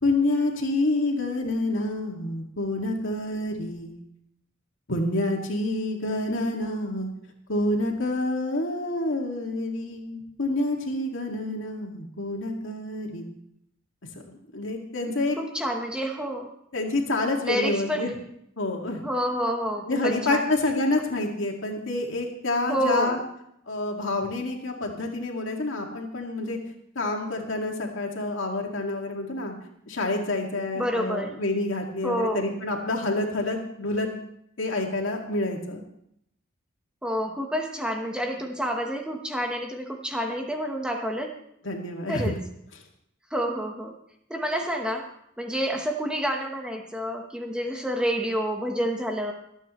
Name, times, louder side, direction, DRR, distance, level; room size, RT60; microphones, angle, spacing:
voice 1, 0.0-4.0 4.9-7.1 7.5-13.3 14.5-15.4 16.7-18.1 18.6-19.0 19.9-23.2 23.7-26.6 27.0-29.6 29.9-34.1 34.6-35.8 41.6-42.3, left 2 dB, 80° left, 1 dB, 2.2 m, -28 dB
voice 2, 15.4-16.5 17.4-18.1 19.0-20.4 22.7-23.2 30.7-31.3 32.0-32.5 37.0-41.3 42.1-42.4 43.3-43.9 44.3-45.1 45.4-49.3, equal, 5° right, 2 dB, 1.1 m, -28 dB
24.5 x 9.0 x 3.2 m, 0.75 s
head